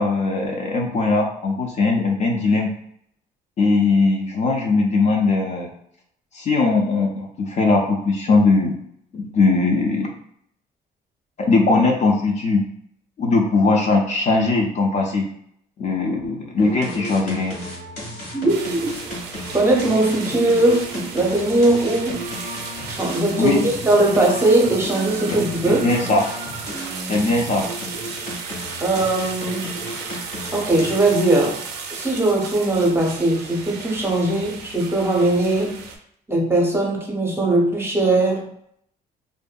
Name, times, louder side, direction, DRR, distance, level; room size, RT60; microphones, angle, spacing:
voice 1, 0.0-2.7 3.6-5.7 6.3-8.8 9.1-10.1 11.4-12.6 13.2-15.3 15.8-17.5 23.4-23.7 25.3-26.2 27.1-27.7, left 3 dB, 45° left, 1 dB, 0.4 m, -20 dB
Verse Chorus Combo, 16.6-31.4, equal, 85° left, 1.3 m, -34 dB
voice 2, 18.3-18.9 19.5-22.2 22.9-25.9 28.8-29.7 30.5-31.6 31.9-35.8 36.3-38.5, right 2 dB, 15° right, -1 dB, 0.6 m, -20 dB
sound 1, 18.5-36.0, right 5 dB, 80° right, 0.4 m, -35 dB
2.5 x 2.5 x 2.2 m, 0.70 s
cardioid pair, 110°, 17 cm